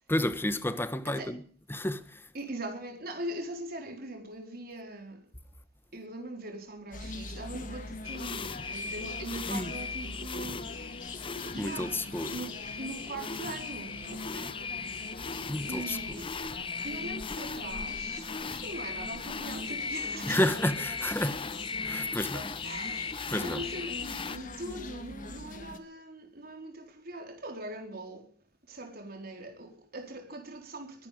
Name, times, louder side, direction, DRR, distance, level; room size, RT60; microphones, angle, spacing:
voice 1, 0.1-1.4 1.7-2.3 9.5-9.7 11.6-12.3 15.5-16.2 20.2-21.5 21.8-22.5 23.3-23.6, left 1 dB, 15° left, 1.2 m, -31 dB
voice 2, 2.3-5.2 5.9-10.6 11.5-14.6 15.7-16.3 16.8-20.4 22.3-28.3 28.7-31.1, right 1 dB, 55° right, 4.4 m, -41 dB
sound 1, 6.9-25.8, left 2 dB, 45° left, 1.9 m, -43 dB
sound 2, 8.0-24.4, left 5 dB, 30° left, 0.8 m, -38 dB
22.0 x 11.5 x 5.2 m
head